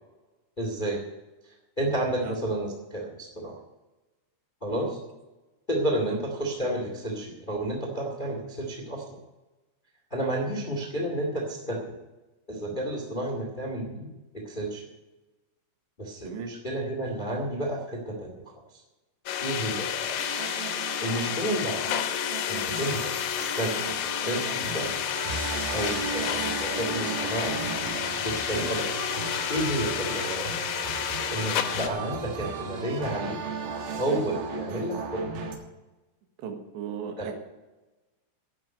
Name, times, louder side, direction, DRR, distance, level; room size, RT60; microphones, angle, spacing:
voice 1, 0.6-1.0 1.4-3.6 4.6-5.0 5.7-9.2 10.1-12.0 12.5-14.1 14.3-14.8 16.0-18.4 18.7-18.8 19.4-20.2 21.0-21.9 22.5-24.9 25.7-27.6 28.2-29.0 29.5-30.5 31.3-33.4 34.0-35.4 37.2-37.3, right 1 dB, 35° left, 1 dB, 0.7 m, -31 dB
sound 1, 19.3-31.9, left 10 dB, 75° left, 2.8 m, -30 dB
sound 2, 20.2-35.5, right 5 dB, 60° right, 2.9 m, -36 dB
voice 2, 36.4-37.3, right 7 dB, 85° right, 4 dB, 3.8 m, -37 dB
11.5 x 7.7 x 9.3 m, 1.1 s
omnidirectional pair, 5.1 m